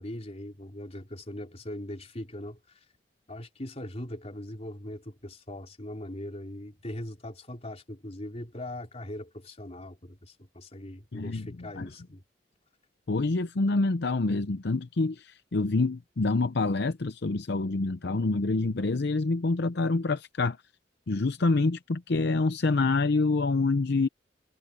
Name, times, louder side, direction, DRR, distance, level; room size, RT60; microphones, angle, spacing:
voice 1, 0.0-2.6 3.3-12.2, left 1 dB, 35° left, 3.4 m, -40 dB
voice 2, 11.1-11.9 13.1-20.6 21.1-24.1, left 3 dB, 65° left, 0.7 m, -27 dB
head